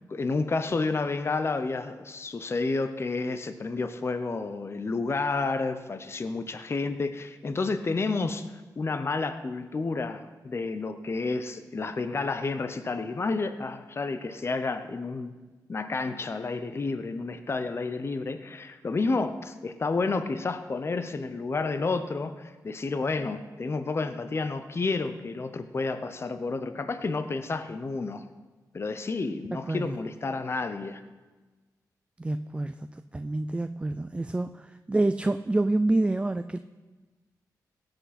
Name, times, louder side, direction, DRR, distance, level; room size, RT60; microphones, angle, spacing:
voice 1, 0.1-15.3 15.7-28.3 28.7-31.0, left 3 dB, 40° left, 10 dB, 0.7 m, -30 dB
voice 2, 32.2-32.8 33.1-36.6, right 2 dB, 15° right, 10 dB, 0.4 m, -27 dB
17.0 x 7.9 x 4.2 m, 1.3 s
cardioid pair, 75°, 7 cm